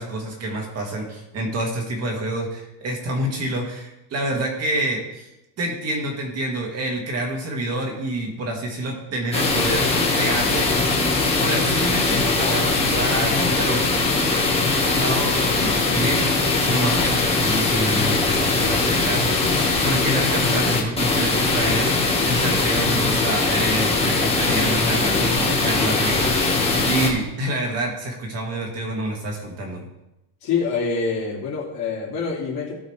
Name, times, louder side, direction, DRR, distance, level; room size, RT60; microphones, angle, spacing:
voice 1, 0.0-5.3 5.6-9.9 10.2-10.7 11.4-14.1 14.8-16.3 16.7-29.9, right 1 dB, 30° right, 1 dB, 2.0 m, -27 dB
sound 1, 9.3-27.1, left 3 dB, 10° left, 1.5 m, -21 dB
voice 2, 30.4-32.7, left 5 dB, 50° left, -6 dB, 2.9 m, -25 dB
16.0 x 5.5 x 3.3 m, 0.93 s
cardioid pair, 175°, 48 cm